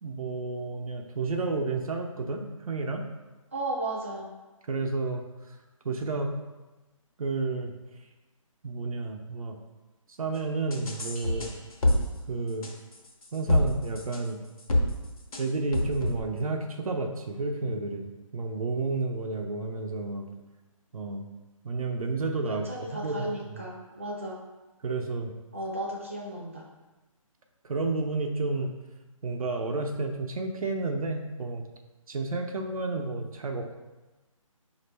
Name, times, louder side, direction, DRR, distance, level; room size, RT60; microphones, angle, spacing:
voice 1, 0.0-3.0 4.7-5.2 5.5-5.6 5.8-6.3 7.2-7.7 8.6-9.6 10.2-11.5 12.3-12.7 13.3-14.4 15.4-18.1 18.3-20.3 20.9-21.3 21.6-22.7 23.0-23.2 24.8-25.3 27.6-28.7 29.2-31.6 32.1-33.8, right 3 dB, 85° right, 3 dB, 0.6 m, -31 dB
voice 2, 3.5-4.4 22.5-24.4 25.5-26.7, right 1 dB, 25° right, -3 dB, 0.5 m, -35 dB
sound 1, 10.7-12.0 12.6-13.7 13.9-14.2 14.6-14.9 15.3-15.4 15.7-16.2, left 1 dB, 90° left, 0.8 m, -25 dB
5.1 x 2.5 x 3.2 m, 1.1 s
hypercardioid pair, 180°, 18 cm